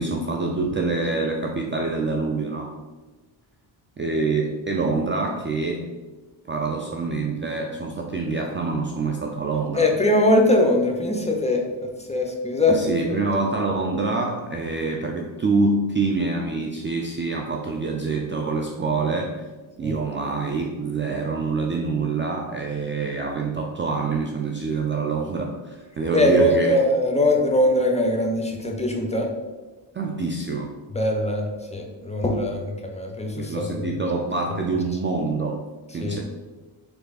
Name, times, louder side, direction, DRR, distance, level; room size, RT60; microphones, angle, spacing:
voice 1, 0.0-2.8 4.0-5.9 6.5-9.9 12.7-19.4 19.8-26.8 29.9-30.7 33.4-35.6 35.9-36.2, right 3 dB, 25° right, 1 dB, 0.4 m, -26 dB
voice 2, 9.7-12.8 13.1-13.2 19.8-20.0 26.1-29.3 30.9-33.9 36.0-36.2, left 1 dB, 15° left, 2 dB, 0.7 m, -21 dB
3.5 x 3.2 x 4.0 m, 1.2 s
cardioid pair, 70°, 49 cm